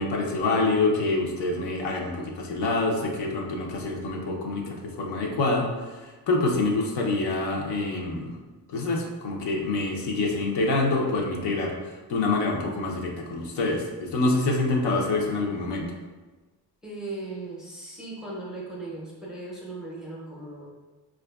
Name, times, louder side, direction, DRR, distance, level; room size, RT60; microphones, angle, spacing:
voice 1, 0.0-8.3 8.7-11.7 12.1-15.8, left 2 dB, 75° left, 0 dB, 0.7 m, -26 dB
voice 2, 16.8-20.7, right 2 dB, ahead, -5 dB, 0.6 m, -37 dB
4.6 x 2.4 x 2.3 m, 1.2 s
cardioid pair, 130°, 41 cm